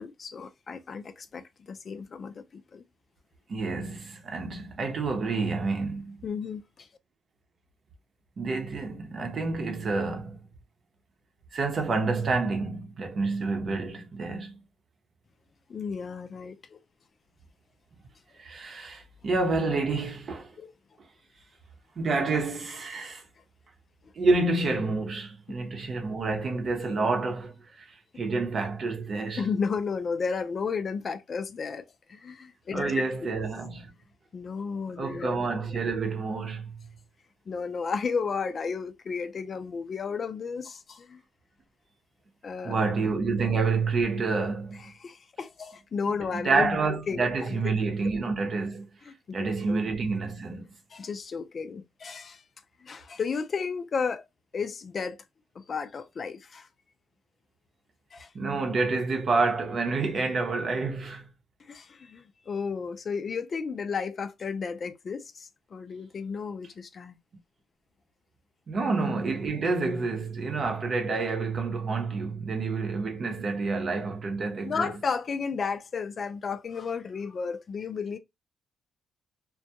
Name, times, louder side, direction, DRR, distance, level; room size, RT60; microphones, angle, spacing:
voice 1, 0.0-2.8 6.2-6.9 15.7-16.8 20.6-20.7 29.4-33.0 34.3-35.3 37.5-41.2 42.4-42.8 44.8-47.6 49.1-49.8 50.9-52.4 52.8-54.2 54.5-55.2 55.6-56.7 58.1-58.3 61.7-67.1 74.6-78.2, left 5 dB, 45° left, 0.4 m, -33 dB
voice 2, 3.5-6.2 8.4-10.4 11.5-14.5 18.4-20.5 22.0-23.2 24.1-29.5 32.7-33.9 35.0-36.8 42.6-44.8 46.4-48.8 49.3-50.7 58.3-61.3 68.7-74.9, right 3 dB, 50° right, 0.8 m, -28 dB
2.2 x 2.2 x 2.8 m
cardioid pair, 90°, 0 cm